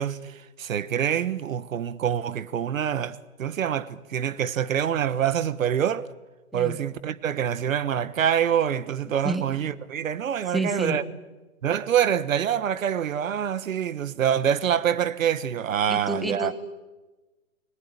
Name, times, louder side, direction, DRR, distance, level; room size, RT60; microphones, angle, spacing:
voice 1, 0.0-6.1 6.5-11.0 11.6-16.5, right 9 dB, 65° right, 1.3 m, -26 dB
voice 2, 10.5-11.0 15.9-16.5, right 1 dB, ahead, 1.1 m, -29 dB
29.5 x 20.0 x 9.8 m
hypercardioid pair, 160°, 42 cm